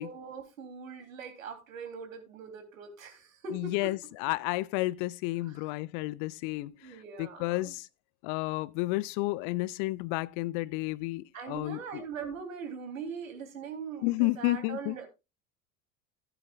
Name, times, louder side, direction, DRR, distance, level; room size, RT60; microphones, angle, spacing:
voice 1, 0.0-3.9 5.4-5.7 6.6-7.7 11.3-15.1, right 6 dB, 70° right, 3.5 m, -41 dB
voice 2, 3.5-7.9 8.2-12.0 14.0-15.0, left 20 dB, 40° left, 0.5 m, -31 dB
16.5 x 9.1 x 2.4 m
figure-of-eight pair, 70°, 41 cm